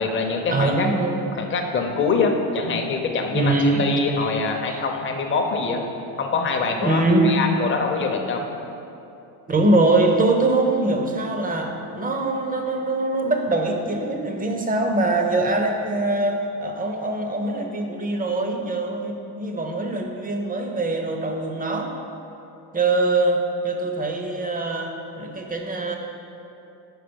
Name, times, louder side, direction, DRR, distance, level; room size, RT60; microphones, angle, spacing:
voice 1, 0.0-0.9 1.3-5.8 6.2-8.5, left 4 dB, 25° left, 3 dB, 0.6 m, -24 dB
voice 2, 0.5-1.3 3.3-3.9 4.2-4.3 4.7-4.8 6.8-7.3 9.5-21.9 22.7-26.0, right 2 dB, 20° right, 3 dB, 0.6 m, -23 dB
4.7 x 4.5 x 5.2 m, 2.8 s
supercardioid pair, 90°, 48 cm